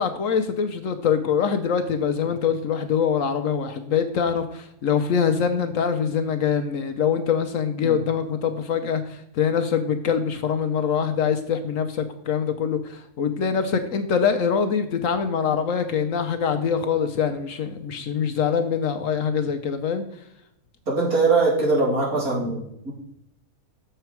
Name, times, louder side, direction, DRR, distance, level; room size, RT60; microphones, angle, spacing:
voice 1, 0.0-20.0, left 7 dB, 65° left, 7 dB, 0.9 m, -24 dB
voice 2, 20.9-22.9, right 3 dB, 65° right, -4 dB, 3.2 m, -22 dB
6.8 x 6.7 x 4.5 m, 0.78 s
omnidirectional pair, 1.7 m